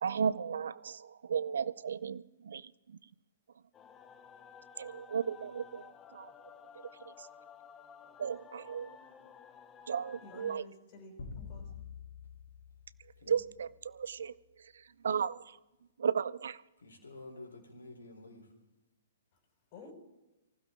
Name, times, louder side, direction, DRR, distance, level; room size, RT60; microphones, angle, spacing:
voice 1, 0.0-3.0 4.8-6.3 7.1-7.3 8.2-9.0 9.9-10.6 13.3-14.3 14.6-15.6 16.0-16.6, right 7 dB, 65° right, 18 dB, 0.6 m, -35 dB
sound 1, 3.7-10.6, left 7 dB, 20° left, 0.9 m, -54 dB
voice 2, 10.2-11.8 19.7-19.9, left 2 dB, 40° left, 2 dB, 5.9 m, -52 dB
sound 2, 11.2-13.8, left 6 dB, 60° left, 2.8 m, -47 dB
voice 3, 16.8-18.6, left 2 dB, 75° left, 3 dB, 3.8 m, -50 dB
24.0 x 15.5 x 3.7 m, 0.99 s
figure-of-eight pair, 120°, 0 cm